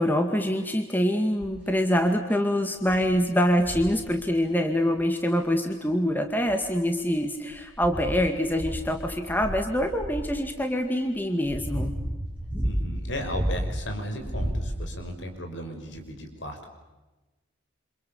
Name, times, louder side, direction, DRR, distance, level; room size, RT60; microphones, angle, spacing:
voice 1, 0.0-11.9, equal, 10° left, 5 dB, 2.1 m, -25 dB
sound 1, 1.4-1.7 2.3-2.4 2.9-3.1 3.6-4.0 5.4-5.5 6.3-7.0 7.5-10.4 11.1-13.8 14.2-15.1 16.0-16.1, equal, 5° right, 5.3 m, -32 dB
voice 2, 12.6-16.7, equal, 65° left, 5 dB, 6.0 m, -35 dB
29.0 x 27.0 x 7.2 m, 1.1 s
head